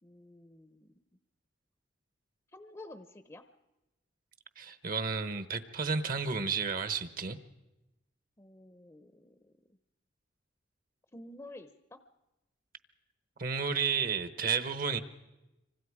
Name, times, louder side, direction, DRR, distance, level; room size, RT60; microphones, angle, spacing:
voice 1, 0.0-0.9 2.5-3.4 8.4-9.5 11.1-12.0, left 1 dB, 15° left, 9 dB, 0.7 m, -50 dB
voice 2, 4.6-7.4 13.4-15.0, right 5 dB, 50° right, 11 dB, 1.0 m, -32 dB
26.0 x 24.5 x 4.9 m, 1.0 s
head